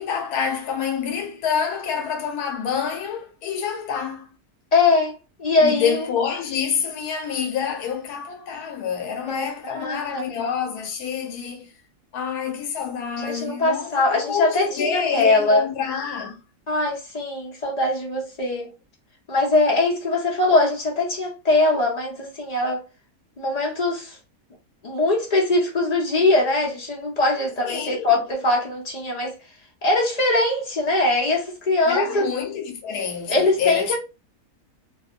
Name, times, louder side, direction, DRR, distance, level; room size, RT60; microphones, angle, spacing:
voice 1, 0.0-4.3 5.6-11.7 12.1-16.4 27.6-28.2 31.9-34.0, left 7 dB, 85° left, 1.2 m, -27 dB
voice 2, 4.7-6.0 9.3-10.4 13.2-15.6 16.7-18.7 19.3-22.8 23.4-24.2 24.8-29.3 29.8-32.3 33.3-33.9, left 2 dB, 35° left, 0.7 m, -22 dB
2.8 x 2.1 x 2.3 m
omnidirectional pair, 1.6 m